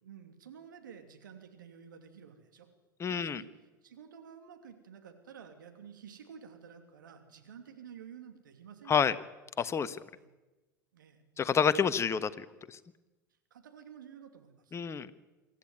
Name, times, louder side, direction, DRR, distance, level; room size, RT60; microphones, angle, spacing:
voice 1, 0.0-2.7 3.1-3.5 3.8-9.0 10.1-10.3 10.9-11.2 13.5-14.8, right 7 dB, 70° right, 7 dB, 2.8 m, -51 dB
voice 2, 3.0-3.4 8.9-9.1 9.6-10.0 11.4-12.8 14.7-15.1, left 7 dB, 25° left, 13 dB, 1.2 m, -29 dB
24.5 x 14.0 x 9.6 m, 1.1 s
figure-of-eight pair, 75°, 11 cm